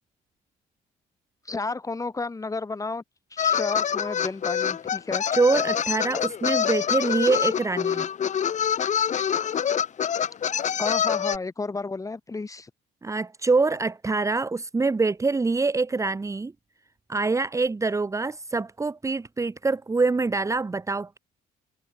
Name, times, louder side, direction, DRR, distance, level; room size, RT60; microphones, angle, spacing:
voice 1, 1.4-3.0 3.3-5.2 10.8-12.7, left 3 dB, 20° left, 6.2 m, -32 dB
sound 1, 3.4-11.4, left 8 dB, 45° left, 4.6 m, -25 dB
voice 2, 5.3-8.1 13.0-16.5 17.1-21.2, right 3 dB, 20° right, 1.6 m, -25 dB
cardioid pair, 110°, 17 cm